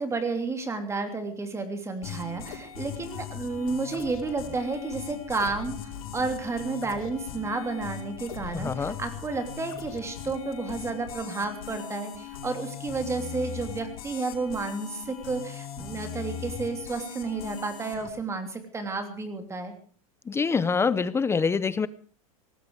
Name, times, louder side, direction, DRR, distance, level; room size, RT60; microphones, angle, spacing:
voice 1, 0.0-19.7, right 3 dB, 15° right, 7 dB, 3.3 m, -31 dB
sound 1, 2.0-18.1, left 7 dB, 85° left, 5.0 m, -39 dB
voice 2, 8.6-9.0 20.3-21.9, left 5 dB, 15° left, 17 dB, 0.7 m, -25 dB
18.5 x 15.5 x 4.9 m, 0.44 s
supercardioid pair, 125°, 18 cm